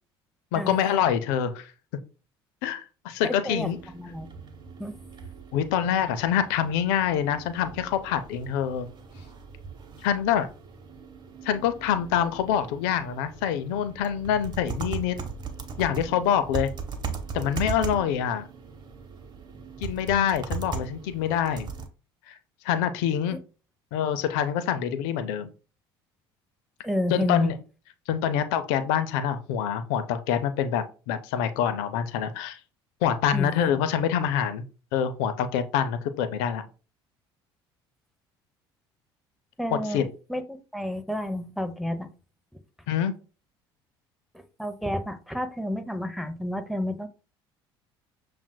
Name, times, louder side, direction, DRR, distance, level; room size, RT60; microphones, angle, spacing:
voice 1, 0.5-1.7 2.6-3.8 5.5-8.9 10.0-10.5 11.4-15.2 15.8-16.7 17.3-18.4 19.8-21.7 22.3-22.4 22.6-23.4 23.9-25.5 27.1-27.6 28.1-32.6 33.0-34.6 34.9-36.6 39.7-40.1 42.9-43.1, left 9 dB, 75° left, 11 dB, 0.5 m, -26 dB
voice 2, 3.4-4.3 4.8-5.0 23.3-23.4 26.8-27.5 33.3-33.5 39.6-40.0 40.3-42.1 44.6-47.1, left 1 dB, ahead, 7 dB, 0.7 m, -30 dB
sound 1, 3.6-21.9, right 5 dB, 35° right, 1.0 m, -39 dB
7.1 x 2.5 x 2.2 m, 0.35 s
hypercardioid pair, 65°, 13 cm